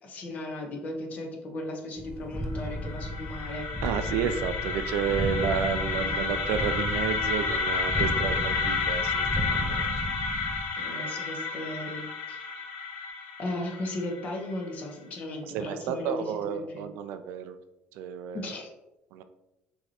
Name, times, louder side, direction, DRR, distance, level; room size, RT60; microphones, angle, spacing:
voice 1, 0.0-3.7 5.9-6.1 10.8-12.4 13.4-16.9 18.3-18.7, left 1 dB, 50° left, 2 dB, 1.0 m, -36 dB
sound 1, 2.0-10.6, equal, 5° left, 0.5 m, -34 dB
sound 2, 2.6-14.5, left 4 dB, 75° left, 0.9 m, -31 dB
voice 2, 3.8-9.9 15.5-17.6 17.9-18.4 19.1-19.2, right 7 dB, 85° right, 9 dB, 0.4 m, -31 dB
5.6 x 3.1 x 2.8 m, 0.91 s
cardioid pair, 125°, 3 cm